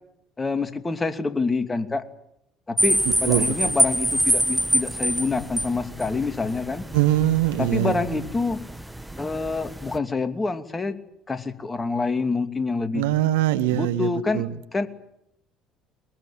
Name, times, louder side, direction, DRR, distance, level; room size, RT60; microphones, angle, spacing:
voice 1, 0.4-2.1 2.7-6.8 7.6-8.6 9.2-11.0 11.3-13.1 13.7-14.9, left 4 dB, 20° left, 8 dB, 2.7 m, -27 dB
sound 1, 2.8-10.0, right 1 dB, 5° right, 1.4 m, -26 dB
voice 2, 3.3-3.8 6.9-8.0 12.9-14.5, right 13 dB, 75° right, 12 dB, 1.3 m, -22 dB
22.5 x 22.0 x 8.8 m, 0.78 s
figure-of-eight pair, 55°, 0 cm